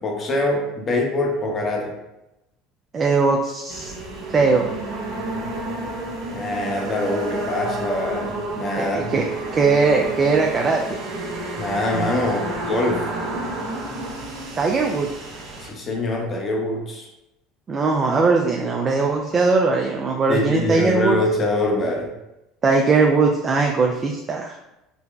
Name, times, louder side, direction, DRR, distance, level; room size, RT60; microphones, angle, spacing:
voice 1, 0.0-1.9 6.3-9.1 11.5-13.0 15.6-17.1 20.3-22.1, left 2 dB, 35° left, 0 dB, 0.7 m, -24 dB
voice 2, 2.9-3.9 4.3-4.7 8.8-11.0 14.6-15.1 17.7-21.2 22.6-24.6, right 4 dB, 35° right, 1 dB, 0.3 m, -20 dB
sound 1, 3.7-15.7, right 2 dB, 55° right, 0.8 m, -30 dB
3.8 x 2.1 x 2.3 m, 0.93 s
hypercardioid pair, 85°, 0 cm